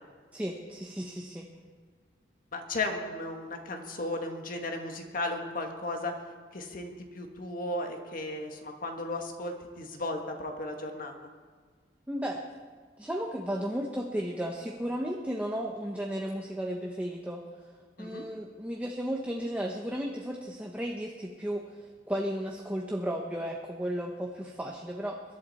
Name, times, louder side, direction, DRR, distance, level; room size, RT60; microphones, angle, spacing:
voice 1, 0.3-1.5 12.1-12.4 13.0-17.4 18.0-25.4, equal, 10° right, 0 dB, 0.9 m, -34 dB
voice 2, 2.5-6.2 6.5-11.1 18.0-18.2, left 2 dB, 50° left, 4 dB, 1.6 m, -35 dB
22.0 x 11.5 x 4.2 m, 1.5 s
head